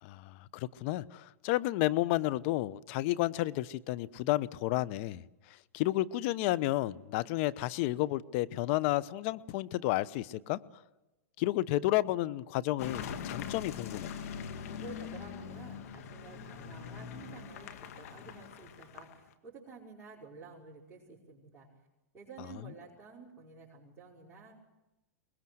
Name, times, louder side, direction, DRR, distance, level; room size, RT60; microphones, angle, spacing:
voice 1, 0.0-10.6 11.4-14.1 22.5-22.6, left 16 dB, 50° left, 17 dB, 0.9 m, -31 dB
Car passing by / Engine, 12.8-19.3, left 7 dB, 65° left, 2.0 m, -42 dB
voice 2, 14.6-21.7 22.1-24.5, right 4 dB, 20° right, -6 dB, 5.5 m, -51 dB
24.0 x 20.5 x 7.9 m, 0.99 s
hypercardioid pair, 125°, 8 cm